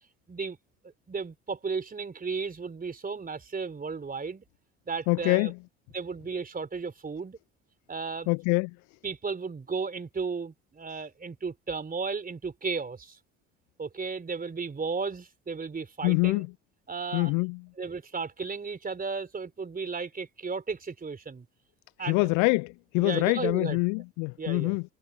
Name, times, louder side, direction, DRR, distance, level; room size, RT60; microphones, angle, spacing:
voice 1, 1.1-4.4 4.9-5.5 5.9-7.4 7.9-8.3 9.0-13.2 13.8-16.4 16.9-17.3 17.8-21.5 22.0-22.3 23.0-23.8 24.4-24.8, right 4 dB, 20° right, 3.7 m, -34 dB
voice 2, 5.1-5.5 8.3-8.7 16.0-16.5 17.1-17.6 22.0-24.8, left 33 dB, 50° left, 0.4 m, -25 dB
figure-of-eight pair, 60°, 38 cm